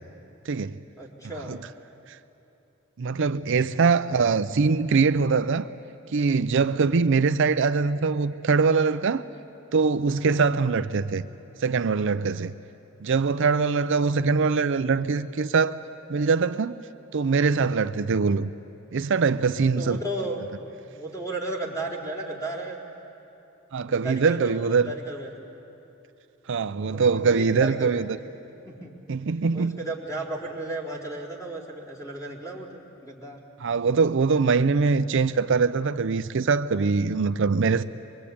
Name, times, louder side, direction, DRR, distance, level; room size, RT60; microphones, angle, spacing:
voice 1, 0.5-0.8 1.5-1.6 2.1-2.2 3.0-5.7 6.1-9.3 9.7-11.2 11.6-12.5 13.0-15.8 16.1-16.7 17.1-18.5 18.9-20.0 23.7-24.9 26.5-28.2 29.1-29.8 33.6-37.8, right 4 dB, 65° right, 0.5 m, -23 dB
voice 2, 1.0-1.6 4.1-4.2 6.7-7.1 10.2-10.6 19.8-22.8 23.9-25.4 26.9-28.0 28.6-29.0 29.5-33.4, right 2 dB, 15° left, 4.0 m, -34 dB
24.0 x 23.5 x 8.6 m
head